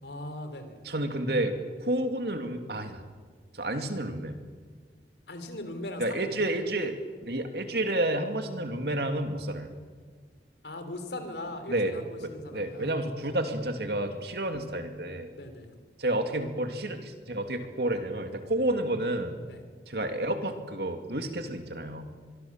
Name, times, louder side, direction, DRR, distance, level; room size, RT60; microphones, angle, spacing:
voice 1, 0.0-0.8 5.3-6.4 10.6-13.0 15.4-15.7 19.5-19.6, left 1 dB, 75° left, 8 dB, 3.5 m, -39 dB
voice 2, 0.8-3.0 3.6-4.4 6.0-7.0 7.2-9.7 11.7-11.9 12.2-15.3 16.0-19.4 19.9-22.1, right 1 dB, 65° right, 6 dB, 2.5 m, -30 dB
24.5 x 22.5 x 7.4 m, 1.5 s
head